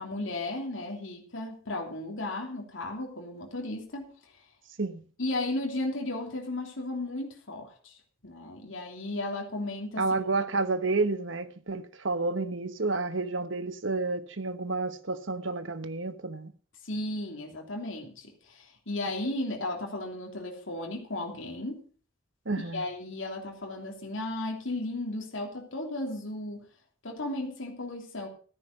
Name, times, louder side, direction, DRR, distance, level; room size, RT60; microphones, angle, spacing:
voice 1, 0.0-4.1 5.2-8.0 8.2-10.0 16.8-21.8 22.6-26.7 27.0-28.3, left 2 dB, 70° left, 3.1 m, -35 dB
voice 2, 10.0-16.5 22.4-22.8, right 3 dB, 65° right, 1.1 m, -30 dB
14.0 x 9.9 x 5.4 m
head